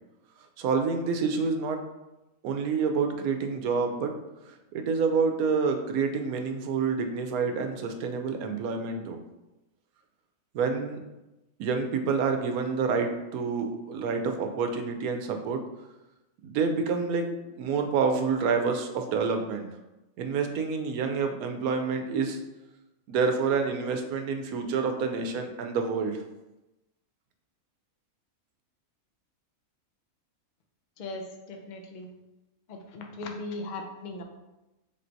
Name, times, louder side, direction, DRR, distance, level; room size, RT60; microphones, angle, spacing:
voice 1, 0.6-1.8 2.4-4.1 4.7-9.2 10.5-11.0 11.6-15.6 16.4-17.3 17.6-19.7 20.2-22.4 23.1-26.2, right 5 dB, 90° right, 5 dB, 1.0 m, -28 dB
voice 2, 31.0-32.1 32.7-34.2, left 2 dB, 65° left, 2 dB, 0.4 m, -38 dB
3.6 x 2.6 x 4.4 m, 0.98 s
omnidirectional pair, 1.5 m